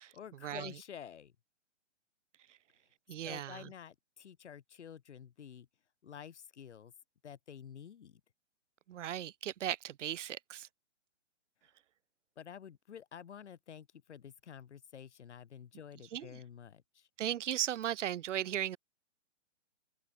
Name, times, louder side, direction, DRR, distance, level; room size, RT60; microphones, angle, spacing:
voice 1, 0.1-1.3 3.2-5.7 6.0-6.9 7.2-8.2 12.4-17.1, left 8 dB, 65° left, 2.7 m, -50 dB
voice 2, 3.1-3.7 8.9-10.7 16.1-16.4 17.2-18.8, right 11 dB, 75° right, 0.5 m, -37 dB
open air
hypercardioid pair, 140°, 37 cm